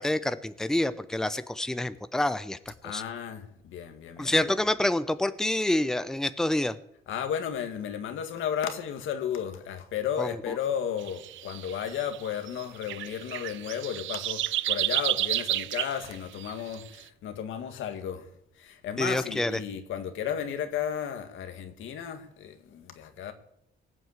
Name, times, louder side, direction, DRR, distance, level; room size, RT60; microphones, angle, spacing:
voice 1, 0.0-3.0 4.2-6.8 10.2-10.4 19.0-19.5, left 1 dB, 5° left, 0.8 m, -27 dB
voice 2, 2.8-4.5 7.1-18.3 18.6-23.3, left 8 dB, 80° left, 1.9 m, -34 dB
sound 1, 11.0-17.0, right 14 dB, 75° right, 0.5 m, -31 dB
19.0 x 7.8 x 8.2 m
cardioid pair, 90°, 20 cm